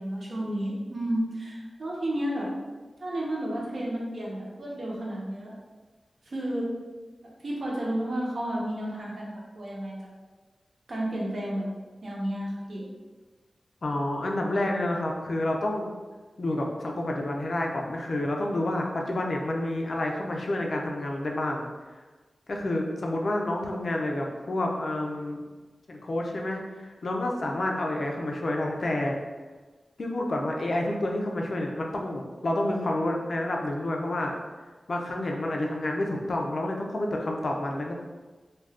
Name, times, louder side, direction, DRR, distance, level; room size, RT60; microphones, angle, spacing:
voice 1, 0.0-2.5 3.0-5.5 6.3-6.7 7.2-9.3 9.6-10.0 10.9-11.7 12.0-12.9, right 1 dB, 60° right, -4 dB, 0.7 m, -31 dB
voice 2, 13.8-15.9 16.4-21.6 22.5-25.4 25.9-29.2 30.0-34.3 34.9-37.9, left 1 dB, 60° left, 0 dB, 0.4 m, -29 dB
2.4 x 2.2 x 3.4 m, 1.3 s
wide cardioid pair, 105°, 0 cm